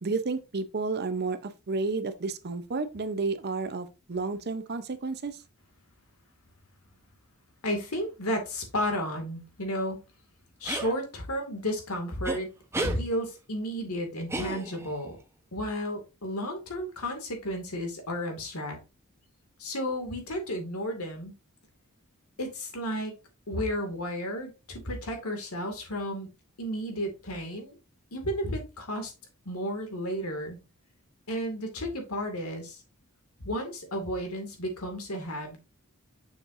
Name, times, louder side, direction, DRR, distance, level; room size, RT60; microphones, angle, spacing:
voice 1, 0.0-5.4, right 3 dB, 50° right, 0.7 m, -31 dB
voice 2, 7.6-10.0 10.6-12.5 12.8-15.2 15.5-18.8 19.6-21.3 22.4-23.2 23.5-26.3 26.6-27.8 28.1-29.1 29.5-30.6 31.3-32.8 33.4-35.6, equal, 80° left, 2.1 m, -33 dB
sound 1, 10.7-10.9 12.2-12.4 12.7-13.0 14.3-15.0, right 2 dB, 10° right, 0.9 m, -32 dB
6.6 x 6.3 x 2.6 m
head